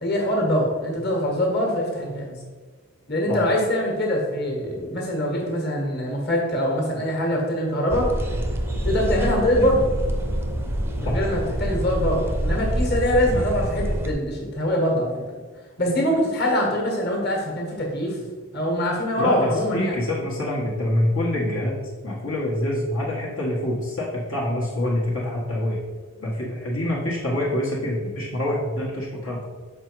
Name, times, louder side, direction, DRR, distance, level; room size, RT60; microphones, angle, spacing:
voice 1, 0.0-2.3 3.1-8.1 8.8-9.9 11.0-15.1 15.8-18.2 18.5-19.9, equal, 45° left, -1 dB, 1.6 m, -23 dB
sound 1, 7.9-14.1, right 1 dB, 10° right, 0.5 m, -26 dB
voice 2, 19.2-21.8 22.0-25.8 26.2-29.4, left 1 dB, 65° left, -5 dB, 1.4 m, -26 dB
6.5 x 5.0 x 4.6 m, 1.4 s
head